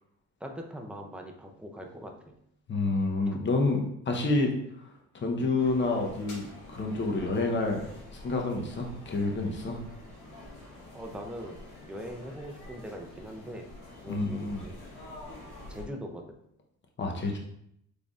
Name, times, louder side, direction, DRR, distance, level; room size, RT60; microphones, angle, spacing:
voice 1, 0.4-2.4 10.9-13.7 14.0-14.8 15.7-16.4, equal, 5° right, 3 dB, 0.5 m, -41 dB
voice 2, 2.7-4.5 5.1-7.8 8.1-9.8 14.1-14.6 17.0-17.4, left 3 dB, 40° left, 1 dB, 0.8 m, -28 dB
sound 1, 5.6-15.8, left 1 dB, 85° left, 1.5 m, -47 dB
3.8 x 3.4 x 2.4 m, 0.73 s
cardioid pair, 90°, 30 cm